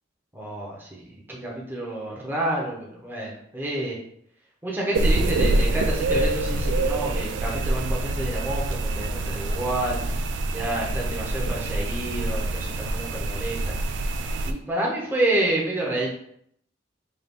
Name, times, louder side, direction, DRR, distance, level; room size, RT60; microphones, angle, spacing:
voice 1, 0.3-4.0 4.6-10.0 10.5-13.9 14.4-16.1, right 1 dB, 10° right, -4 dB, 0.8 m, -29 dB
sound 1, 4.9-14.5, right 2 dB, 75° right, 0.3 m, -26 dB
3.9 x 2.6 x 3.5 m, 0.71 s
head